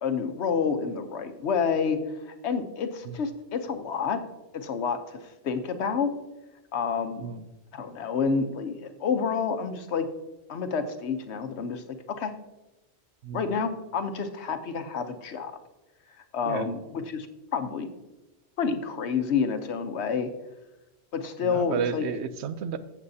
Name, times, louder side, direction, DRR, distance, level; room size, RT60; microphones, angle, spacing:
voice 1, 0.0-2.0 2.2-4.2 4.5-6.1 6.7-7.2 7.7-10.1 10.5-12.3 13.3-15.5 16.3-17.3 17.5-17.9 18.6-20.3 21.1-22.0, left 6 dB, 85° left, 9 dB, 1.1 m, -29 dB
voice 2, 21.4-22.8, right 7 dB, 85° right, 12 dB, 1.0 m, -32 dB
14.5 x 7.3 x 2.7 m, 1.0 s
omnidirectional pair, 1.1 m